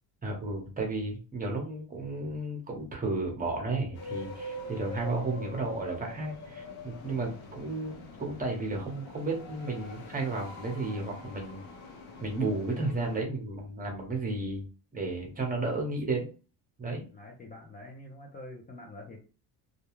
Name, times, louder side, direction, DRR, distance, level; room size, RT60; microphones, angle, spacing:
voice 1, 0.2-11.6 12.2-14.6 14.9-16.3 16.8-17.0, right 2 dB, 20° right, 1 dB, 0.9 m, -33 dB
sound 1, 3.9-13.2, left 2 dB, 90° left, 0.9 m, -44 dB
voice 2, 7.2-7.6 17.1-19.2, left 1 dB, 20° left, -1 dB, 0.5 m, -46 dB
2.4 x 2.2 x 3.0 m, 0.35 s
cardioid pair, 115°, 42 cm